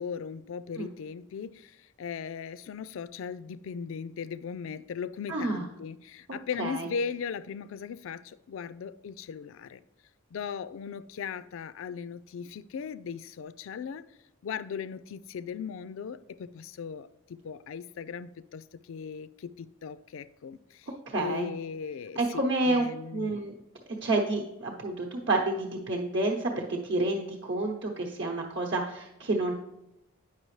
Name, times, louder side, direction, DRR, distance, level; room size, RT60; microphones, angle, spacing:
voice 1, 0.0-9.8 10.3-14.0 14.4-20.9 21.1-23.3, left 6 dB, 60° left, 15 dB, 0.3 m, -38 dB
voice 2, 5.3-5.7 6.6-6.9 21.1-21.5 22.2-22.8 23.1-23.6 24.0-29.5, right 2 dB, 55° right, -1 dB, 0.9 m, -29 dB
9.0 x 5.8 x 3.2 m, 0.88 s
head